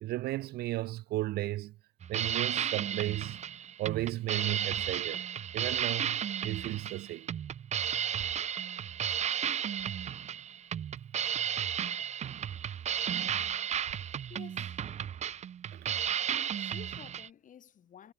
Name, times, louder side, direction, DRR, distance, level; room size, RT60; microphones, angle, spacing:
voice 1, 0.0-1.7 2.1-3.4 3.8-5.3 5.5-7.3 15.7-15.9, right 17 dB, 70° right, 0.5 m, -34 dB
sound 1, 2.0-17.3, right 9 dB, 40° right, 0.8 m, -34 dB
voice 2, 14.3-14.8 16.6-18.1, left 9 dB, 50° left, 3.5 m, -52 dB
cardioid pair, 110°, 17 cm